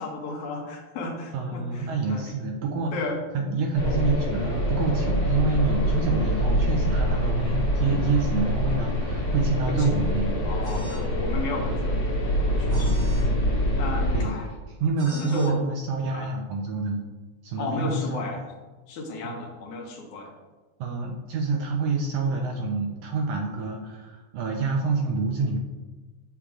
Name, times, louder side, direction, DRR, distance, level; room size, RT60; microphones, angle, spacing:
voice 1, 0.0-2.3 2.9-3.2 3.8-4.0 9.7-9.9 10.4-12.2 12.4-12.9 13.8-14.5 15.1-15.6 16.1-16.3 17.6-18.4 18.9-20.3, left 3 dB, 75° left, 1 dB, 2.4 m, -33 dB
voice 2, 1.3-3.1 3.3-10.4 10.8-10.9 12.7-13.0 14.1-14.3 14.7-17.0 17.4-18.5 19.2-19.4 20.8-25.6, right 4 dB, 75° right, 1 dB, 1.6 m, -27 dB
sound 1, 3.7-14.3, equal, 55° left, 2.8 m, -25 dB
sound 2, 10.6-11.1 12.7-13.3 15.0-15.5, right 1 dB, 30° right, 1.3 m, -46 dB
8.2 x 7.3 x 2.4 m, 1.2 s
omnidirectional pair, 3.4 m